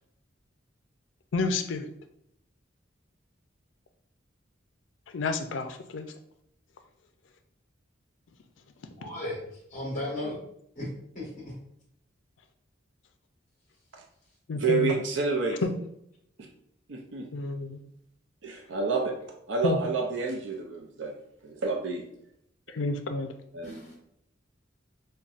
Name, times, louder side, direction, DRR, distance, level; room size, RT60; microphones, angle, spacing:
voice 1, 1.3-1.9 5.1-6.1 14.5-14.9 15.6-15.7 17.3-17.8 19.6-19.8 22.7-23.3, left 3 dB, 80° left, 7 dB, 0.4 m, -29 dB
voice 2, 9.0-10.4 10.8-10.9 11.1-11.5 23.6-24.0, left 1 dB, 45° left, -4 dB, 1.1 m, -36 dB
voice 3, 14.6-15.6 16.9-17.3 18.4-19.1 19.5-21.1 21.4-22.0 23.5-23.8, right 3 dB, 70° right, 1 dB, 0.5 m, -29 dB
5.4 x 2.2 x 2.4 m, 0.75 s
head